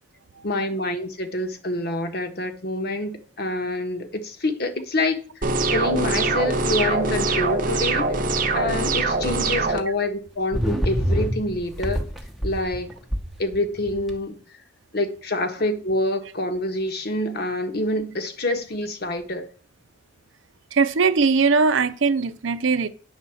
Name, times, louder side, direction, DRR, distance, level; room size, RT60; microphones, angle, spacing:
voice 1, 0.4-5.2 5.7-8.2 8.5-12.0 12.4-12.9 13.4-14.4 14.9-19.5, left 1 dB, 50° left, 1.3 m, -26 dB
sound 1, 5.4-9.8, right 3 dB, 40° right, 0.9 m, -23 dB
sound 2, 9.2-9.3 10.5-14.1, equal, ahead, 0.9 m, -26 dB
voice 2, 20.7-22.9, right 4 dB, 75° right, 0.6 m, -20 dB
9.3 x 4.1 x 7.1 m
head